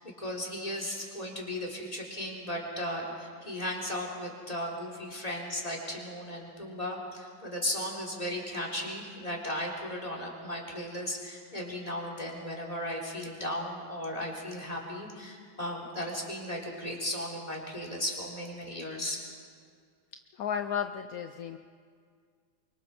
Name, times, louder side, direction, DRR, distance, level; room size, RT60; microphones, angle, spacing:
voice 1, 0.0-19.2, left 1 dB, 20° left, -1 dB, 3.6 m, -36 dB
voice 2, 20.4-21.6, left 8 dB, 65° left, 7 dB, 0.9 m, -33 dB
28.0 x 24.0 x 4.4 m, 2.1 s
omnidirectional pair, 2.1 m